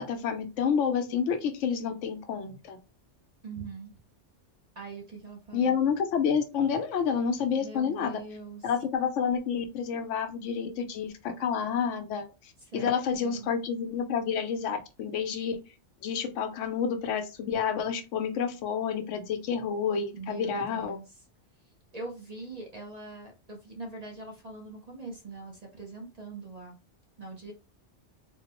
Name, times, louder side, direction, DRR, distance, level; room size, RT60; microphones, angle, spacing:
voice 1, 0.0-2.8 5.5-8.2 8.6-12.3 12.7-15.6 16.0-21.0, left 7 dB, 80° left, 7 dB, 0.9 m, -29 dB
voice 2, 3.4-4.0 4.7-5.8 7.6-8.7 12.6-13.5 20.1-21.2 21.6-26.8 27.2-27.5, right 3 dB, 40° right, 1 dB, 0.6 m, -42 dB
3.6 x 2.0 x 2.8 m, 0.30 s
omnidirectional pair, 1.2 m